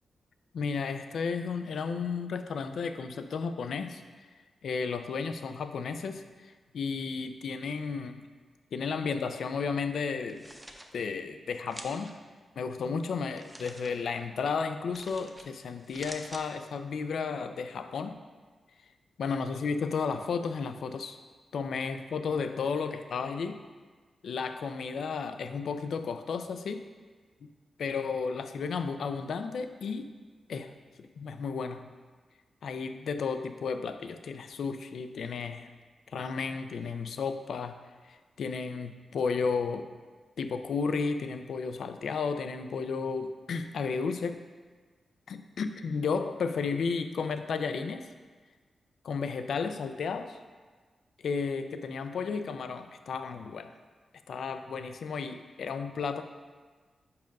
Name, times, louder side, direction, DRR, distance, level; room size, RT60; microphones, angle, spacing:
voice 1, 0.5-4.0 4.6-8.2 8.7-10.4 10.9-12.1 12.6-18.2 19.2-21.2 21.5-23.6 24.2-26.8 27.8-30.1 30.5-31.9 32.6-35.7 36.1-37.8 38.0-39.9 40.4-44.4 45.3-48.1 49.0-50.4 51.2-53.7 54.3-56.2, left 5 dB, 80° left, 9 dB, 0.4 m, -33 dB
sound 1, 10.2-10.9 11.7-12.1 13.3-13.9 14.9-15.5 15.8-16.4, right 1 dB, 10° right, 0.6 m, -46 dB
5.4 x 5.2 x 5.2 m, 1.4 s
wide cardioid pair, 125°, 0 cm